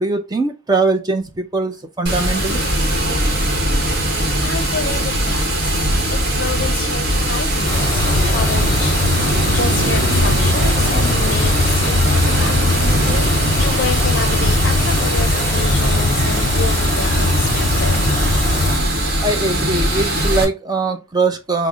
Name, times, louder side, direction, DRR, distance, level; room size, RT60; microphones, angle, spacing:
voice 1, 0.0-2.6 19.2-21.7, right 3 dB, 20° right, 0.5 m, -21 dB
Water, 2.1-20.4, right 1 dB, 50° right, 1.0 m, -20 dB
voice 2, 4.4-6.0 6.4-12.9 13.2-18.0, left 4 dB, 55° left, 0.5 m, -29 dB
sound 1, 7.6-18.8, left 2 dB, 20° left, 1.4 m, -20 dB
Laughter, 8.1-14.4, right 5 dB, 90° right, 0.4 m, -29 dB
5.3 x 2.0 x 2.3 m
head